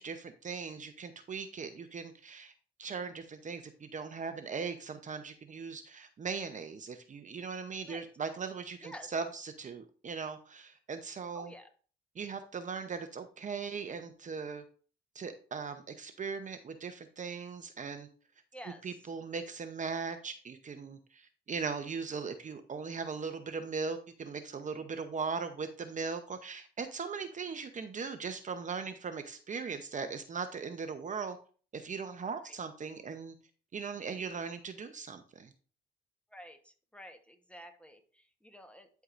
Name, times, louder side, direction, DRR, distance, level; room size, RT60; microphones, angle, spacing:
voice 1, 0.0-2.5 2.8-11.5 12.2-14.6 15.1-18.1 18.8-31.4 31.7-33.3 33.7-35.5, right 5 dB, 40° right, 8 dB, 0.8 m, -39 dB
voice 2, 11.3-11.7 18.5-18.9 32.4-32.6 36.3-38.9, equal, 5° left, 6 dB, 1.1 m, -50 dB
11.0 x 4.7 x 2.6 m, 0.41 s
cardioid pair, 90°, 20 cm